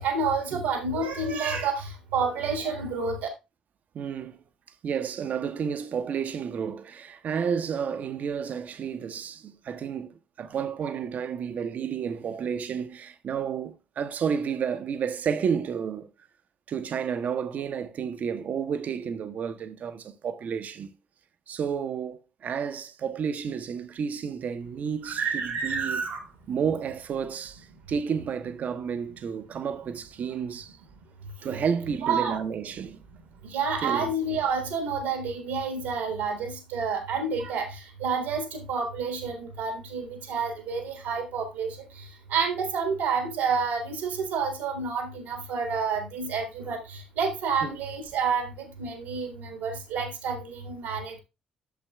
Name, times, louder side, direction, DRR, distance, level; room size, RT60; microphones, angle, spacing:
voice 1, 0.0-3.2 25.0-26.2 32.0-32.4 33.5-37.7 38.0-41.7 42.3-46.8 47.2-48.5 48.8-51.2, right 5 dB, 70° right, 1.4 m, -29 dB
voice 2, 3.9-4.4 4.8-16.1 16.7-21.0 21.5-26.0 26.5-30.8 31.4-33.0 33.8-34.1 47.6-47.8, right 7 dB, 45° right, 0.8 m, -31 dB
12.5 x 7.0 x 2.2 m
figure-of-eight pair, 45°, 4 cm